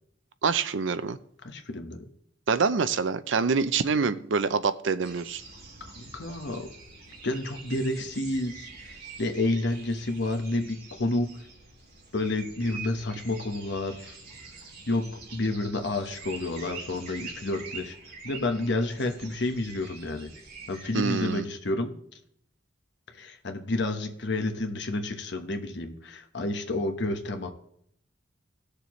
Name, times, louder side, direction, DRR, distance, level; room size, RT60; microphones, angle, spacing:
voice 1, 0.4-1.2 2.5-5.4 20.9-21.5, right 5 dB, 75° right, 13 dB, 0.6 m, -26 dB
voice 2, 1.4-2.1 5.8-6.7 7.2-11.3 12.1-14.2 14.9-18.0 18.2-20.3 20.7-21.9 23.1-27.5, left 2 dB, 65° left, 5 dB, 1.2 m, -30 dB
sound 1, 5.0-21.4, right 4 dB, 55° right, 2.8 m, -45 dB
17.5 x 6.7 x 3.1 m, 0.68 s
head